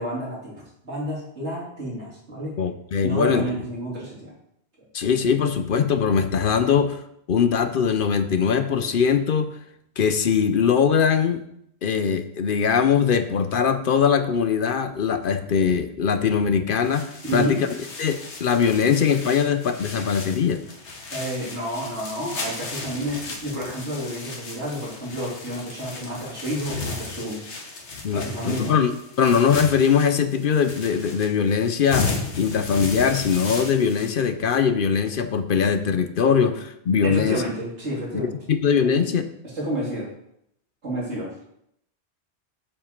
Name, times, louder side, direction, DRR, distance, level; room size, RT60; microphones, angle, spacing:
voice 1, 0.0-2.6 3.0-4.3 17.2-17.6 21.1-27.4 28.1-28.7 37.0-38.4 38.8-39.1 39.5-40.1 40.8-41.4, right 1 dB, 85° right, -5 dB, 3.3 m, -30 dB
voice 2, 2.6-3.4 4.9-7.0 7.3-9.5 10.0-11.4 11.8-17.7 18.0-20.6 28.0-28.9 29.2-37.4 38.1-39.2, left 6 dB, 60° left, 10 dB, 0.7 m, -21 dB
sound 1, 16.7-34.1, left 3 dB, 90° left, 1.6 m, -35 dB
7.4 x 7.1 x 4.4 m, 0.75 s
omnidirectional pair, 1.1 m